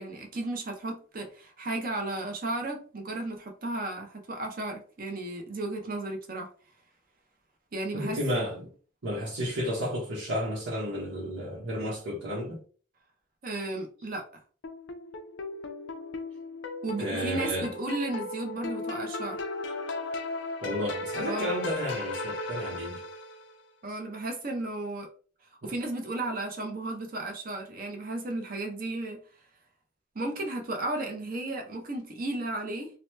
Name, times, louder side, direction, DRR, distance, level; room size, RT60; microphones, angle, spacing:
voice 1, 0.0-6.5 7.7-8.2 13.4-14.2 16.8-19.4 21.2-21.6 23.8-25.1 25.6-29.2 30.1-32.9, right 2 dB, 45° right, 0.7 m, -34 dB
voice 2, 7.9-8.7 9.0-12.6 17.0-17.7 20.6-23.0 25.6-25.7, equal, 85° right, 1.0 m, -32 dB
sound 1, 14.6-23.5, left 2 dB, 60° left, 0.4 m, -36 dB
2.9 x 2.1 x 3.1 m
head